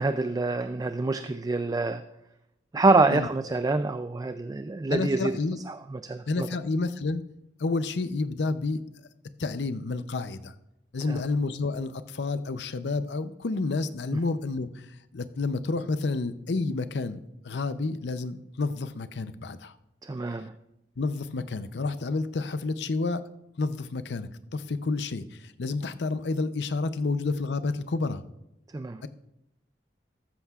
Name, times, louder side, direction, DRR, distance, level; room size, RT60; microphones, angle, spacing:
voice 1, 0.0-2.0 2.7-5.4 5.7-6.5 11.1-11.2 20.0-20.5 28.7-29.0, right 3 dB, 20° right, 10 dB, 0.3 m, -26 dB
voice 2, 4.9-5.6 6.3-7.2 7.6-8.8 9.4-10.5 10.9-14.9 15.1-19.7 21.0-23.2 23.6-28.2 29.0-29.1, left 3 dB, 75° left, 12 dB, 0.6 m, -30 dB
14.0 x 13.0 x 2.4 m, 0.87 s
head